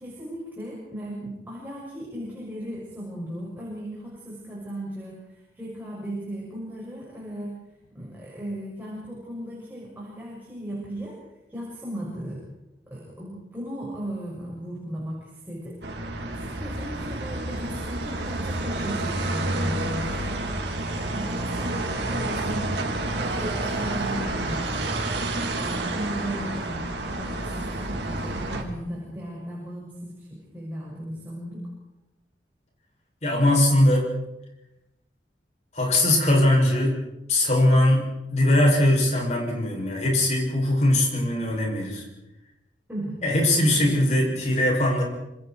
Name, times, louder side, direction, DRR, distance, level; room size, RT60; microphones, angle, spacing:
voice 1, 0.0-7.6 7.9-11.2 11.5-12.4 12.9-15.8 16.3-22.7 23.2-24.9 25.4-31.7 42.9-43.2, right 1 dB, 10° right, -5 dB, 6.9 m, -36 dB
sound 1, 15.8-28.6, right 2 dB, 75° right, 3.5 m, -29 dB
voice 2, 33.2-34.1 35.7-37.0 37.3-42.0 43.2-45.0, left 1 dB, 40° left, 0 dB, 7.4 m, -21 dB
27.5 x 25.5 x 4.7 m, 0.92 s
head